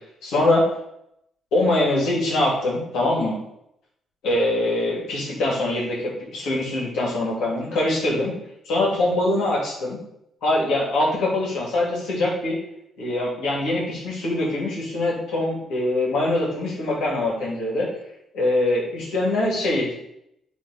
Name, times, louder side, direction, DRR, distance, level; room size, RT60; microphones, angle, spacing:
voice 1, 0.2-0.6 1.5-3.4 4.2-8.3 8.7-10.0 10.4-12.6 13.0-17.9 18.3-20.0, left 1 dB, 85° left, -4 dB, 2.6 m, -23 dB
7.3 x 3.5 x 4.9 m, 0.78 s
cardioid pair, 90°, 0 cm